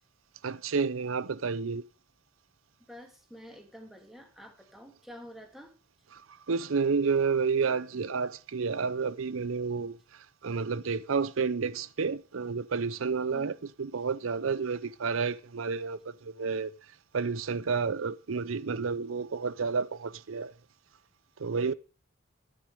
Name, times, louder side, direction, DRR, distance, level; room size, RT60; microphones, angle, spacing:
voice 1, 0.4-1.8 6.5-9.9 10.4-13.5 13.8-16.7 17.1-20.5 21.4-21.7, right 5 dB, 85° right, 0.6 m, -30 dB
voice 2, 2.8-5.7 13.3-13.6, equal, ahead, 2.7 m, -48 dB
12.5 x 10.0 x 5.1 m
head